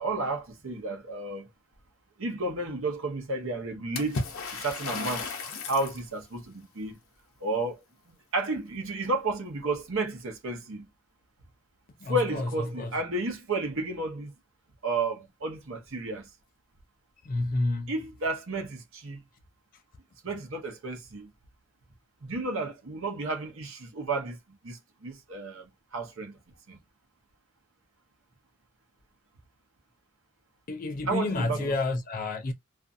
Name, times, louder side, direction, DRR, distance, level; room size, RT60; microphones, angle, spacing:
voice 1, 0.0-1.5 2.2-4.2 4.5-7.0 7.4-7.8 8.3-10.8 12.1-14.3 14.8-16.3 17.9-19.2 20.2-21.3 22.2-24.4 24.6-26.3 26.7-26.8 31.1-31.7, right 2 dB, 70° right, 0.8 m, -32 dB
Water / Splash splatter, 4.0-6.0, left 4 dB, 85° left, 0.7 m, -34 dB
voice 2, 12.0-12.5 12.8-13.0 17.2-17.9 30.7-32.5, left 2 dB, 40° left, 0.4 m, -29 dB
2.5 x 2.4 x 2.5 m
head